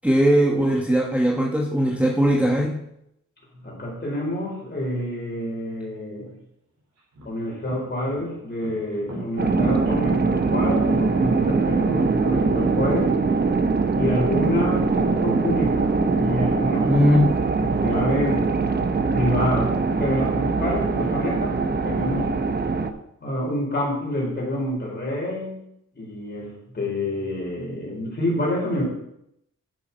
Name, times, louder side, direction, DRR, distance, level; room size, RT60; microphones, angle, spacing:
voice 1, 0.0-2.8 16.8-17.3, equal, 5° right, -3 dB, 1.1 m, -19 dB
voice 2, 3.6-6.3 7.2-13.1 13.9-17.2 17.5-18.5 19.1-19.7 20.0-21.6 21.8-22.3 23.2-25.6 25.9-28.8, left 1 dB, 35° left, -3 dB, 4.7 m, -27 dB
sound 1, 6.2-6.3 7.0-13.5, equal, 55° right, 3.1 m, -36 dB
sound 2, 9.4-22.9, right 4 dB, 30° right, 0.7 m, -22 dB
10.0 x 7.1 x 5.6 m, 0.79 s
wide cardioid pair, 150°, 32 cm